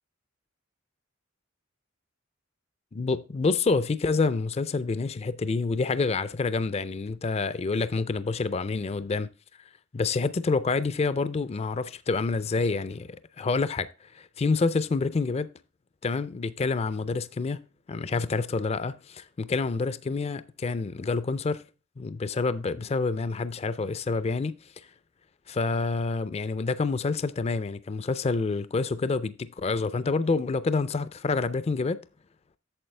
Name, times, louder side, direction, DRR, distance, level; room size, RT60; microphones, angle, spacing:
voice 1, 2.9-9.3 9.9-13.1 13.4-15.5 16.0-17.6 17.9-21.6 22.0-24.6 25.5-32.0, left 4 dB, 30° left, 0.4 m, -27 dB
8.8 x 7.0 x 3.2 m
head